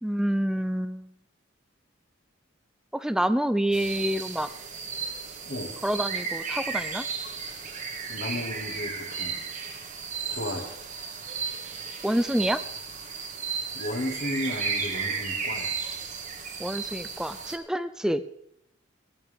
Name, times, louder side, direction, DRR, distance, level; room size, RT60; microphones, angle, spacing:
voice 1, 0.0-1.1 2.9-4.5 5.8-7.1 12.0-12.6 16.6-18.2, equal, 5° right, 12 dB, 0.4 m, -27 dB
sound 1, 3.7-17.6, right 5 dB, 35° right, 1.4 m, -34 dB
voice 2, 5.5-5.8 8.1-9.4 10.3-10.8 13.7-15.8, left 1 dB, 50° left, 3 dB, 2.0 m, -34 dB
17.5 x 10.5 x 3.5 m, 0.76 s
head